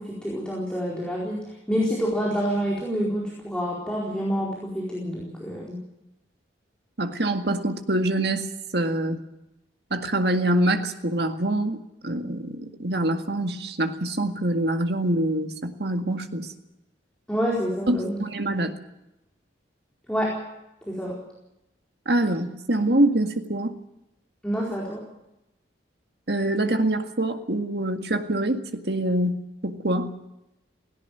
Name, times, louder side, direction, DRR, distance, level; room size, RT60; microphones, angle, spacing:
voice 1, 0.0-5.8 17.3-18.2 20.1-20.4 20.9-21.2 24.4-25.0, equal, 5° left, -5 dB, 4.5 m, -27 dB
voice 2, 7.0-9.2 9.9-11.8 12.0-16.5 17.9-18.7 22.1-23.7 26.3-30.2, right 1 dB, 60° right, 6 dB, 2.0 m, -25 dB
17.5 x 17.0 x 9.2 m, 0.88 s
head